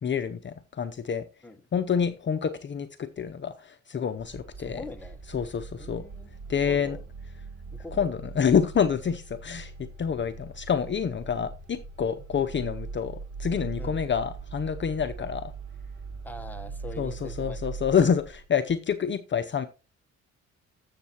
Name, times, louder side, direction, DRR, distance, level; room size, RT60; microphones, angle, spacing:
voice 1, 0.0-1.2 1.7-4.8 5.3-6.0 6.5-7.0 8.0-9.7 10.0-15.5 17.0-19.7, left 7 dB, 40° left, 0.7 m, -27 dB
sound 1, 4.2-18.4, right 4 dB, 45° right, 1.5 m, -41 dB
voice 2, 4.6-5.2 5.8-6.3 6.7-7.0 7.8-8.2 13.8-14.0 16.2-17.8, left 2 dB, 5° left, 1.1 m, -42 dB
13.0 x 7.4 x 2.9 m
cardioid pair, 90°, 30 cm